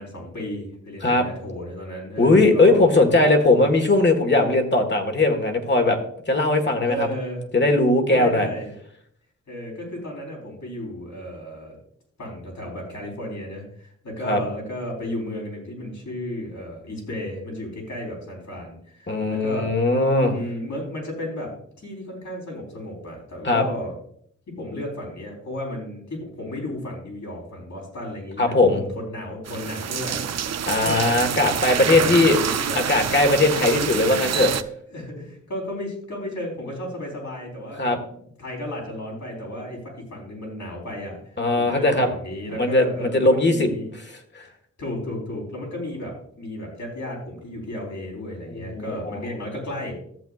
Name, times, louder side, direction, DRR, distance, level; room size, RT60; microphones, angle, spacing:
voice 1, 0.0-2.9 6.9-7.4 8.1-8.7 9.5-11.7 12.2-19.7 20.3-23.9 24.5-31.2 32.0-32.9 34.9-43.9 44.8-50.0, left 1 dB, 70° left, -2 dB, 4.0 m, -33 dB
voice 2, 2.2-6.0 6.3-7.1 7.5-8.5 14.2-14.4 19.1-20.4 23.4-23.6 28.4-28.8 30.7-32.4 32.7-34.5 37.8-38.0 41.4-42.1 42.5-43.7 44.1-44.4 48.5-49.2, left 2 dB, 35° left, 4 dB, 1.5 m, -19 dB
sound 1, 29.5-34.6, right 8 dB, 60° right, 0.5 m, -27 dB
14.0 x 7.9 x 2.4 m, 0.66 s
wide cardioid pair, 90°, 29 cm